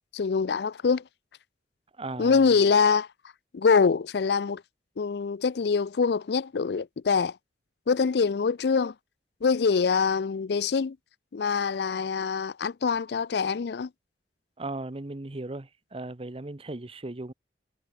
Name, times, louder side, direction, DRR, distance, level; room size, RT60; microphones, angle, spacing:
voice 1, 0.1-1.0 2.2-3.1 3.5-4.6 5.0-7.4 7.9-8.9 9.4-11.0 11.3-13.9, left 5 dB, 65° left, 0.4 m, -24 dB
voice 2, 2.0-2.4 14.6-17.3, right 2 dB, 30° right, 0.9 m, -37 dB
head